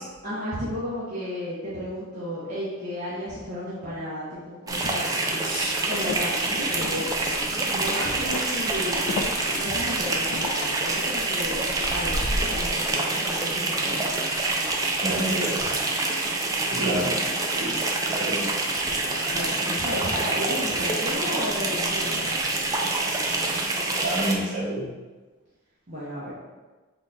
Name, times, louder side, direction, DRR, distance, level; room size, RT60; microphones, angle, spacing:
voice 1, 0.2-5.3 5.9-7.1 7.7-9.1 9.6-14.1 15.2-15.7 19.3-22.3 25.9-26.3, equal, 35° right, -10 dB, 0.8 m, -33 dB
sound 1, 4.7-24.3, right 2 dB, 15° right, 0.3 m, -26 dB
Walk footsteps, 5.6-7.9 8.3-8.7 9.1-9.7 10.3-10.8, left 4 dB, 70° left, 0.3 m, -35 dB
voice 2, 15.0-15.5 16.7-17.1 17.5-17.8 18.1-18.6 24.0-24.8, right 1 dB, 55° right, -8 dB, 1.3 m, -29 dB
3.8 x 2.2 x 3.8 m, 1.3 s
head